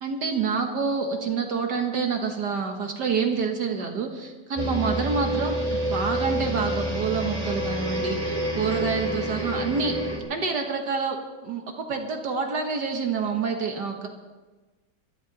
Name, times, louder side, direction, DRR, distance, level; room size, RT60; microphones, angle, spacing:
voice 1, 0.0-10.0 10.3-11.2 11.4-14.1, right 5 dB, 65° right, 3 dB, 1.8 m, -27 dB
sound 1, 4.6-10.2, right 1 dB, 20° right, 2.1 m, -28 dB
21.0 x 13.5 x 4.0 m, 1.2 s
omnidirectional pair, 2.0 m